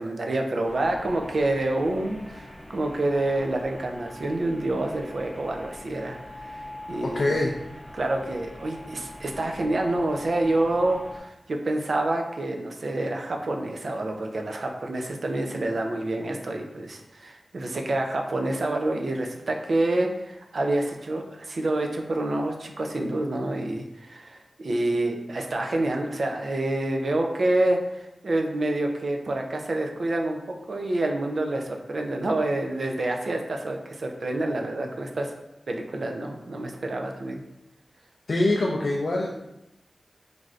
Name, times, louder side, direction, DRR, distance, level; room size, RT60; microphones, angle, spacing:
voice 1, 0.0-6.2 6.4-6.6 6.9-7.4 7.9-30.4 30.7-35.3 35.7-37.4, right 2 dB, 65° right, 2 dB, 0.4 m, -27 dB
sound 1, 0.6-11.2, left 1 dB, 5° right, 0.5 m, -43 dB
voice 2, 7.0-7.5 38.3-39.3, left 2 dB, 65° left, -2 dB, 0.3 m, -24 dB
3.2 x 2.5 x 2.4 m, 0.88 s
wide cardioid pair, 90°, 0 cm